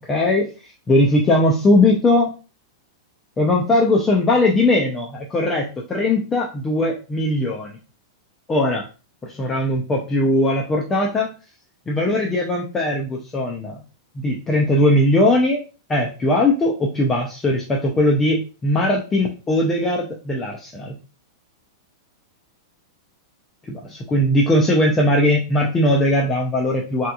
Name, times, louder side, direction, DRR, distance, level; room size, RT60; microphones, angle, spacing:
voice 1, 0.1-2.3 3.4-7.7 8.5-8.8 9.2-11.3 11.9-13.8 14.2-15.6 15.9-21.0 23.7-27.1, left 1 dB, 10° left, -1 dB, 0.4 m, -19 dB
3.4 x 2.8 x 2.3 m, 0.33 s
supercardioid pair, 160°, 2 cm